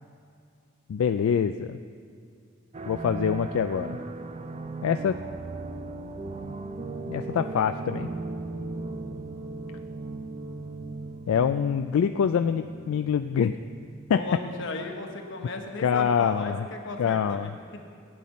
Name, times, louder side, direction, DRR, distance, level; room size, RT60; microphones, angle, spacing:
voice 1, 0.9-1.8 2.9-4.0 4.8-5.2 7.1-8.1 11.3-13.5 14.1-14.2 15.8-16.7 17.0-17.5, left 7 dB, 85° left, 9 dB, 0.3 m, -25 dB
sound 1, 2.7-14.8, right 3 dB, 30° right, 0.5 m, -37 dB
voice 2, 14.1-17.8, left 3 dB, 60° left, 3 dB, 1.2 m, -35 dB
16.0 x 9.4 x 4.2 m, 2.4 s
head